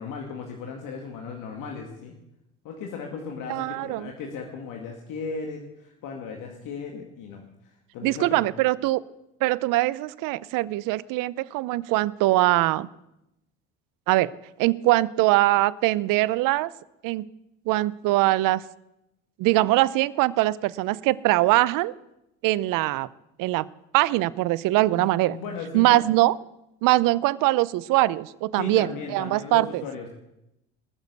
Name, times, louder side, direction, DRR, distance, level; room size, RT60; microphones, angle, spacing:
voice 1, 0.0-2.1 2.6-8.5 24.9-26.0 28.6-30.1, left 5 dB, 70° left, 2 dB, 2.1 m, -36 dB
voice 2, 3.5-4.1 8.0-9.0 9.4-12.9 14.1-14.3 14.6-16.7 17.0-17.2 17.7-18.6 19.4-21.9 22.4-23.1 23.4-23.7 23.9-25.4 25.7-26.4 26.8-29.8, right 18 dB, 70° right, 20 dB, 0.7 m, -22 dB
19.5 x 7.2 x 8.2 m, 0.89 s
supercardioid pair, 80°, 33 cm